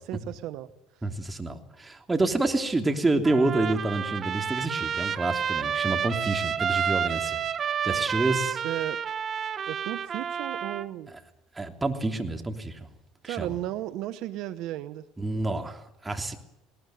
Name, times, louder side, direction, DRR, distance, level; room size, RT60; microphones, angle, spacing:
voice 1, 0.0-1.0 8.6-9.0 9.7-11.1 13.2-15.0, right 14 dB, 65° right, 14 dB, 0.8 m, -34 dB
voice 2, 1.0-7.4 7.8-8.6 11.5-12.8 13.2-13.5 15.2-16.4, right 2 dB, 15° right, 5 dB, 3.2 m, -28 dB
Trumpet, 3.2-10.8, right 7 dB, 45° right, 1.2 m, -30 dB
20.0 x 18.5 x 9.3 m, 0.85 s
hypercardioid pair, 70°, 0 cm